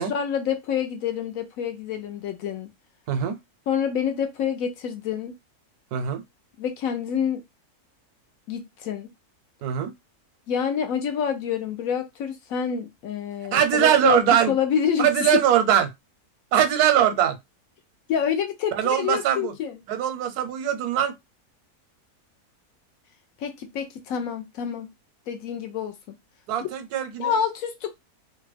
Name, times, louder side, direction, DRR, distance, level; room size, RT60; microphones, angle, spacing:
voice 1, 0.0-2.7 3.7-5.3 6.6-7.4 8.5-9.1 10.5-15.4 18.1-19.8 23.4-24.9 25.3-25.9 27.2-27.9, left 8 dB, 70° left, 1.0 m, -27 dB
voice 2, 5.9-6.2 9.6-9.9 13.5-14.5 15.0-15.9 16.5-17.4 18.7-19.5 19.9-21.1 26.5-27.4, right 9 dB, 85° right, 1.1 m, -21 dB
2.8 x 2.2 x 3.2 m
omnidirectional pair, 1.6 m